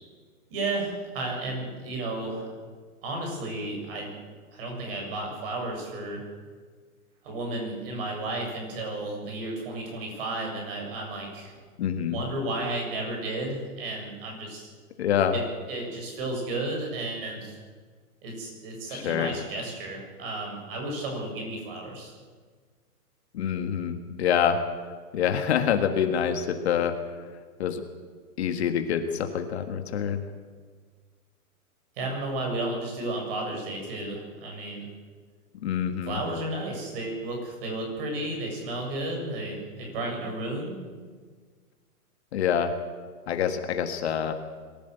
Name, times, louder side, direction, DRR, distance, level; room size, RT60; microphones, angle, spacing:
voice 1, 0.5-2.5 3.0-4.1 4.5-6.2 7.2-11.6 12.1-14.7 15.3-15.4 15.7-17.6 18.2-22.1 32.0-34.9 36.1-40.7, right 2 dB, 35° right, 1 dB, 7.4 m, -33 dB
voice 2, 11.8-12.2 15.0-15.4 18.9-19.3 23.3-24.6 25.1-26.9 27.6-27.8 28.4-30.2 35.6-36.2 42.3-42.7 43.3-44.3, left 8 dB, 45° left, 6 dB, 1.7 m, -26 dB
22.5 x 15.5 x 8.2 m, 1.6 s
hypercardioid pair, 160°, 46 cm